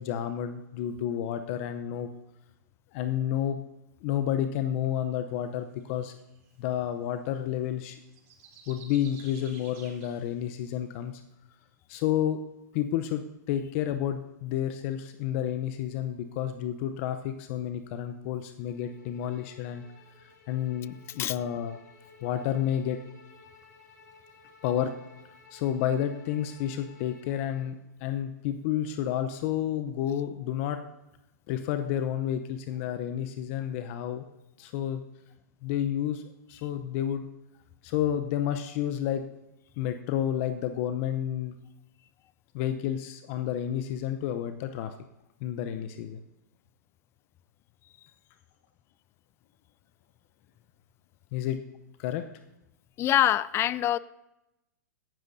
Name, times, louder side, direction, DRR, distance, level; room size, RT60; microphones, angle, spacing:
voice 1, 0.0-2.1 2.9-3.6 4.0-6.1 6.6-8.0 8.7-11.2 11.9-12.4 12.7-19.8 20.2-21.8 22.2-23.0 24.6-24.9 25.5-30.8 31.5-34.2 34.6-35.0 35.6-36.2 36.5-37.2 37.8-39.2 39.8-41.6 42.5-44.9 45.4-46.2 51.3-51.6 52.0-52.2, left 10 dB, 50° left, 9 dB, 0.7 m, -30 dB
sound 1, 5.8-6.5 8.0-10.2, right 6 dB, 55° right, 3.6 m, -52 dB
Bowed string instrument, 18.6-27.7, left 4 dB, 70° left, 2.3 m, -55 dB
voice 2, 53.0-54.0, left 12 dB, 25° left, 19 dB, 0.4 m, -24 dB
17.0 x 12.0 x 2.7 m, 0.89 s
hypercardioid pair, 115°, 9 cm